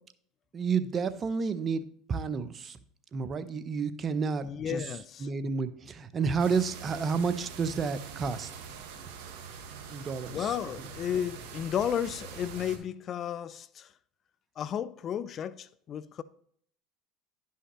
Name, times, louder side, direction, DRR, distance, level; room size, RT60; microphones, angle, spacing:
voice 1, 0.5-2.8 3.1-4.8 5.2-8.5 9.9-10.5, right 5 dB, 35° right, 0.7 m, -30 dB
voice 2, 4.4-5.3 10.3-13.9 14.6-16.2, left 9 dB, 45° left, 0.4 m, -33 dB
sound 1, 6.4-12.8, right 6 dB, 70° right, 1.4 m, -44 dB
11.0 x 5.6 x 3.0 m
hypercardioid pair, 85°, 0 cm